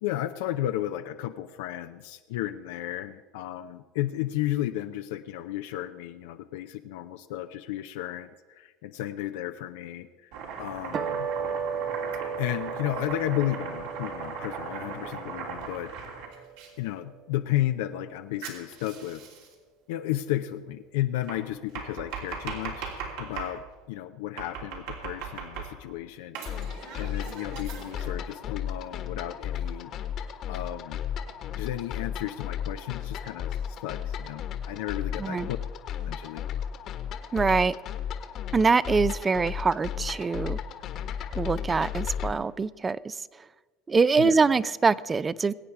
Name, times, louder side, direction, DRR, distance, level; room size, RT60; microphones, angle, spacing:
voice 1, 0.0-11.3 12.4-16.2 16.8-19.2 19.9-26.6 27.0-29.9 30.5-31.0 31.6-35.6 36.1-36.4 44.2-44.6, left 14 dB, 80° left, 8 dB, 0.6 m, -33 dB
Domestic sounds home sounds, 10.3-16.7 18.4-19.5 21.3-23.6 24.4-25.9 26.3-28.1, right 5 dB, 75° right, 3.0 m, -38 dB
sound 1, 10.9-17.4, right 6 dB, 45° right, 1.4 m, -36 dB
sound 2, 26.5-42.3, left 8 dB, 50° left, 1.4 m, -34 dB
voice 2, 35.2-35.5 37.3-37.7 38.5-40.6 41.4-43.2 43.9-45.5, right 4 dB, 20° right, 19 dB, 0.4 m, -24 dB
22.0 x 8.7 x 4.7 m, 1.4 s
supercardioid pair, 110°, 0 cm